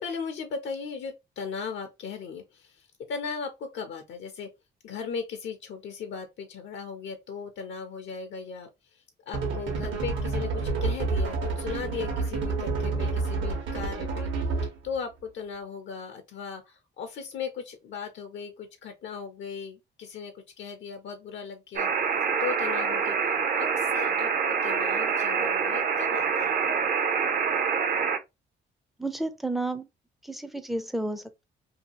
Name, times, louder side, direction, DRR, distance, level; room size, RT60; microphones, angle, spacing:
voice 1, 0.0-4.5 4.8-14.3 14.8-21.9 22.4-23.2 23.6-26.6, left 5 dB, 70° left, 0.6 m, -37 dB
sound 1, 9.3-14.9, right 3 dB, 70° right, 1.1 m, -29 dB
sound 2, 21.8-28.2, right 6 dB, 45° right, 0.6 m, -26 dB
voice 2, 29.0-29.9 30.2-31.4, right 2 dB, ahead, 0.4 m, -31 dB
2.7 x 2.3 x 2.7 m
cardioid pair, 90°, 20 cm